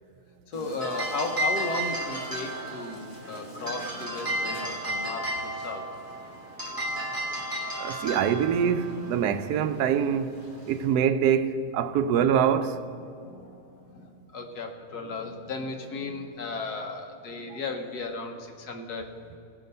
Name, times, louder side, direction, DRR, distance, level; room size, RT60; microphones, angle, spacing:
voice 1, 0.5-5.8 6.2-6.3 11.9-12.1 13.2-19.1, left 3 dB, 70° left, 1.5 m, -35 dB
sound 1, 0.5-10.9, right 1 dB, 15° right, 1.7 m, -34 dB
voice 2, 7.8-10.3 10.7-12.8 17.5-17.6, right 8 dB, 75° right, 1.1 m, -24 dB
17.5 x 6.0 x 5.3 m
omnidirectional pair, 1.7 m